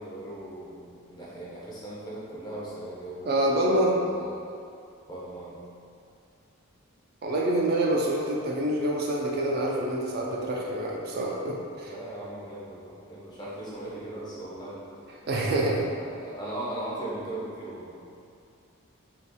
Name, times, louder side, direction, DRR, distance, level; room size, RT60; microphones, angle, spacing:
voice 1, 0.0-4.4 5.1-5.6 11.8-15.0 15.6-18.0, right 1 dB, 20° left, -7 dB, 0.5 m, -38 dB
voice 2, 3.3-4.0 7.2-11.9 15.3-15.9, right 1 dB, 45° right, -2 dB, 0.3 m, -26 dB
2.7 x 2.4 x 3.5 m, 2.4 s
head